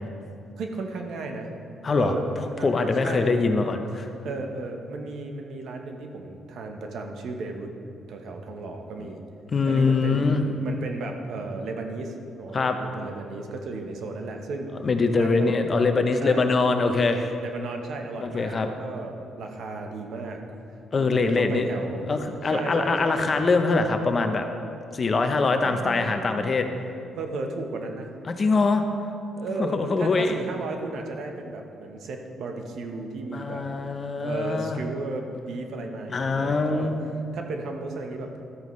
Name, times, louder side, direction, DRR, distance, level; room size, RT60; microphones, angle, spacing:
voice 1, 0.6-1.5 1.9-3.3 4.2-7.7 8.1-9.2 9.7-14.7 15.2-15.5 16.2-16.4 17.4-20.4 21.0-22.1 22.5-23.3 25.6-26.8 27.2-28.1 29.4-33.6 34.1-36.9 37.3-38.3, right 3 dB, 70° right, 3 dB, 1.0 m, -34 dB
voice 2, 1.8-2.1 2.6-4.1 9.0-9.1 9.5-10.4 12.5-12.8 14.8-17.3 18.2-18.7 20.9-21.7 22.1-24.5 24.9-26.7 28.3-28.8 29.6-30.4 33.3-34.8 36.1-36.9, left 3 dB, 40° left, 6 dB, 0.8 m, -23 dB
13.0 x 8.9 x 3.2 m, 2.6 s
cardioid pair, 90°, 0 cm